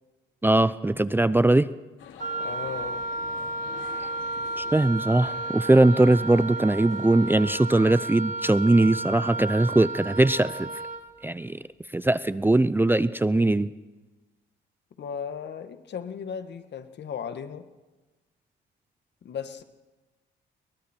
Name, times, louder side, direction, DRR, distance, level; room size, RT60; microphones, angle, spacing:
voice 1, 0.4-1.7 4.6-10.7 11.2-11.6 11.9-13.7, right 2 dB, 10° right, 15 dB, 0.6 m, -21 dB
sound 1, 2.0-7.6, left 8 dB, 80° left, 2.6 m, -47 dB
Wind instrument woodwind instrument, 2.2-11.1, right 2 dB, 40° right, 3.3 m, -33 dB
voice 2, 2.4-3.1 15.0-17.7 19.2-19.6, left 7 dB, 60° left, 9 dB, 1.7 m, -36 dB
29.5 x 22.5 x 4.5 m, 1.2 s
cardioid pair, 90°, 20 cm